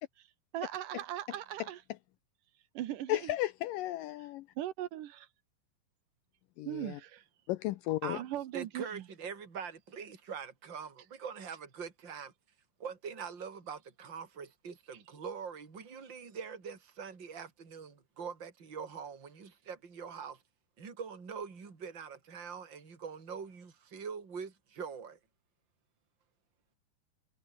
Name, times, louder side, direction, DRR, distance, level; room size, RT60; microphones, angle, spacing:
voice 1, 0.5-1.8 2.7-3.4 4.6-5.3 6.6-7.2 8.1-9.0, right 12 dB, 70° right, 2.5 m, -39 dB
voice 2, 3.1-4.4 6.6-7.0 7.5-8.2, left 16 dB, 75° left, 2.2 m, -34 dB
voice 3, 8.0-12.3 12.8-20.4 20.8-25.2, right 6 dB, 30° right, 4.1 m, -43 dB
omnidirectional pair, 4.3 m